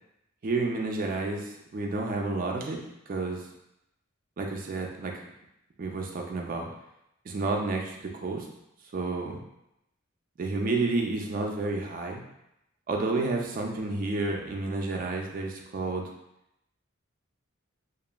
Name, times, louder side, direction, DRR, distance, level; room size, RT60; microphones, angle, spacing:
voice 1, 0.4-3.5 4.4-5.1 5.8-6.7 7.2-8.5 8.9-9.4 10.4-12.2 12.9-16.1, right 3 dB, 45° right, 1 dB, 0.4 m, -30 dB
3.0 x 2.4 x 2.2 m, 0.84 s
head